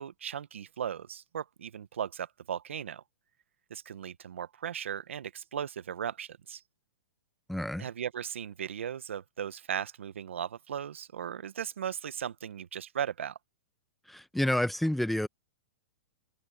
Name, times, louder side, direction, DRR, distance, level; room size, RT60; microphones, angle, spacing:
voice 1, 0.0-3.0 3.7-6.6 7.8-13.4, right 8 dB, 85° right, 1.2 m, -37 dB
voice 2, 7.5-7.9 14.1-15.3, left 1 dB, ahead, 1.0 m, -29 dB
hypercardioid pair, 130°, 6 cm